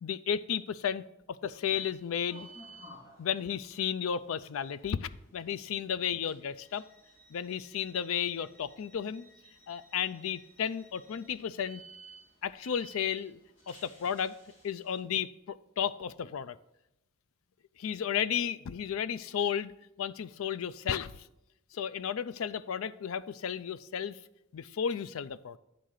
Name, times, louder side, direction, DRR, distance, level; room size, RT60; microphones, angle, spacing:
voice 1, 0.0-1.0 1.4-2.5 3.2-6.8 7.3-9.3 9.7-11.8 12.4-13.4 13.7-14.4 14.6-16.6 17.8-19.7 20.0-21.3 21.7-24.2 24.5-25.6, left 8 dB, 80° left, 15 dB, 0.4 m, -33 dB
sound 1, 1.7-15.0, right 2 dB, 60° left, 2.2 m, -56 dB
9.5 x 3.8 x 6.4 m, 0.86 s
head